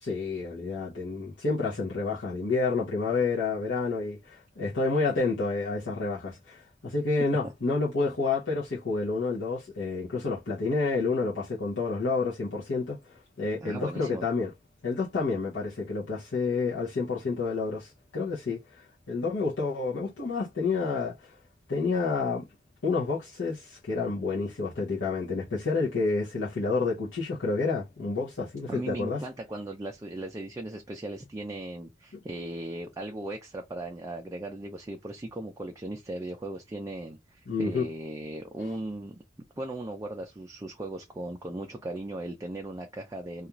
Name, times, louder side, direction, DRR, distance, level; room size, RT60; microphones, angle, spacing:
voice 1, 0.0-14.5 14.8-21.3 21.7-22.5 22.8-29.2 37.5-37.9, left 4 dB, 75° left, 0.7 m, -29 dB
voice 2, 13.6-14.2 28.7-39.2 39.6-43.5, right 1 dB, 15° right, 0.3 m, -37 dB
2.4 x 2.3 x 2.9 m
head